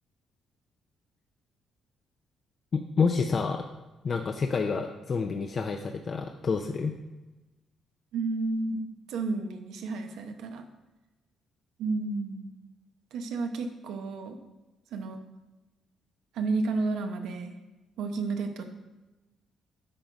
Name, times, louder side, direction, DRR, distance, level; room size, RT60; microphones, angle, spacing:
voice 1, 2.7-3.6 4.0-7.0, left 5 dB, 45° left, 4 dB, 0.5 m, -28 dB
voice 2, 8.1-10.6 11.8-12.5 13.1-14.4 14.9-15.2 16.3-17.5 18.0-18.6, right 3 dB, 85° right, 5 dB, 0.9 m, -31 dB
8.9 x 3.9 x 5.9 m, 1.1 s
cardioid pair, 90°, 0 cm